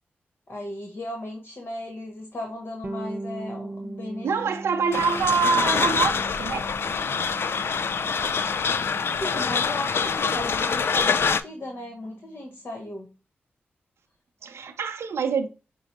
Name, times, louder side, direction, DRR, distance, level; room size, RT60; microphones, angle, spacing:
voice 1, 0.5-4.3 9.2-13.1, left 1 dB, 50° left, 1.1 m, -36 dB
Bass guitar, 2.8-12.4, right 2 dB, 35° right, 0.6 m, -41 dB
voice 2, 4.2-6.7 14.4-15.5, right 5 dB, 85° right, 0.5 m, -25 dB
sound 1, 4.9-11.4, left 5 dB, 65° left, 0.4 m, -25 dB
6.0 x 2.0 x 4.1 m
cardioid pair, 50°, 4 cm